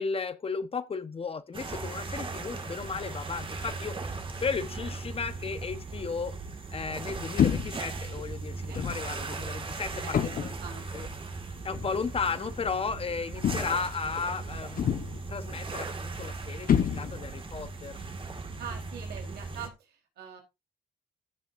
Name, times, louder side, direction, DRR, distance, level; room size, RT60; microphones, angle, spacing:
voice 1, 0.0-6.3 6.7-10.2 10.9-11.1 11.6-18.0, left 5 dB, 35° left, 1.2 m, -34 dB
sound 1, 1.5-19.7, right 3 dB, 30° right, 2.2 m, -38 dB
sound 2, 7.4-7.9 8.7-9.1 10.1-10.6 11.7-11.9 13.4-13.9 14.8-15.3 16.7-17.4, left 9 dB, 60° left, 1.3 m, -27 dB
voice 2, 10.0-10.9 18.6-20.4, right 7 dB, 85° right, 4.3 m, -43 dB
15.5 x 7.6 x 2.7 m
cardioid pair, 95°, 16 cm